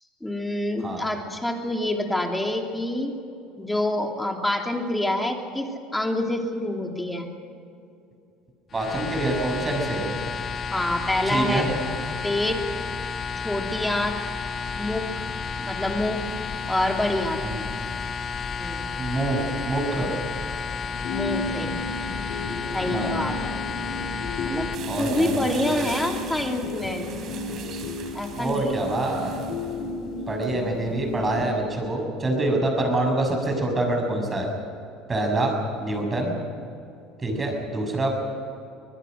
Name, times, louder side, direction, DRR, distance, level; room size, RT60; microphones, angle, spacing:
voice 1, 0.2-3.1 3.6-7.3 10.7-11.7 12.2-12.6 13.4-14.2 14.8-15.3 15.6-16.3 16.7-17.4 18.6-18.9 21.1-21.7 22.7-23.5 24.5-24.7 25.0-27.2 28.1-29.0 29.7-30.4 36.2-36.4, left 1 dB, 5° left, 2 dB, 2.9 m, -27 dB
sound 1, 8.7-24.7, left 5 dB, 35° left, 1.0 m, -32 dB
voice 2, 8.7-10.1 11.3-11.8 17.4-17.6 19.0-20.1 22.9-23.1 24.9-25.5 28.4-29.4 30.3-34.5 35.1-36.3 37.2-38.1, right 2 dB, 20° right, 2 dB, 6.5 m, -26 dB
sound 2, 16.3-31.5, left 3 dB, 60° left, 4.1 m, -35 dB
sound 3, 24.7-29.8, right 7 dB, 50° right, 3.5 m, -40 dB
24.5 x 20.0 x 6.4 m, 2.6 s
supercardioid pair, 120°, 0 cm